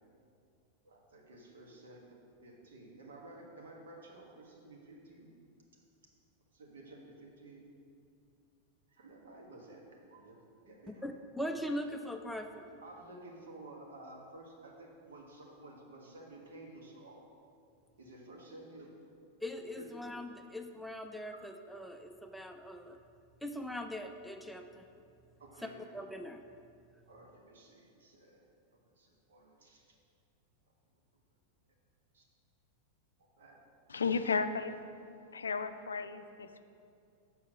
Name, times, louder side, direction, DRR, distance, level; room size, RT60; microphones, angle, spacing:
voice 1, 0.8-2.0 2.4-5.3 6.5-7.7 8.9-11.1 12.8-17.2 18.0-18.9 19.8-19.9 20.4-20.5 25.4-26.0 27.1-28.4 29.0-29.8 32.1-32.3 33.4-33.6, right 2 dB, 65° right, -1 dB, 1.6 m, -53 dB
voice 2, 11.0-12.6 19.4-23.0 23.4-24.9 25.9-26.4, equal, ahead, 5 dB, 0.4 m, -41 dB
voice 3, 33.9-34.7 35.3-36.6, left 5 dB, 70° left, 10 dB, 0.4 m, -33 dB
7.3 x 5.6 x 6.6 m, 2.5 s
figure-of-eight pair, 90°, 0 cm